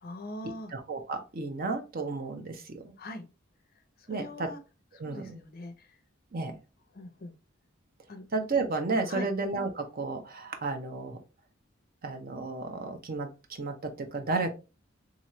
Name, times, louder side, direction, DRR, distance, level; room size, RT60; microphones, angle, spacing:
voice 1, 0.0-0.7 3.0-3.2 4.0-4.6 5.0-6.0 6.9-7.3 8.1-8.2 9.1-9.3, left 1 dB, 50° left, 0.6 m, -41 dB
voice 2, 0.7-2.9 4.1-4.5 5.0-5.4 6.3-6.6 8.3-11.2 12.0-14.5, right 3 dB, 50° right, 0.7 m, -32 dB
3.7 x 3.0 x 3.0 m
head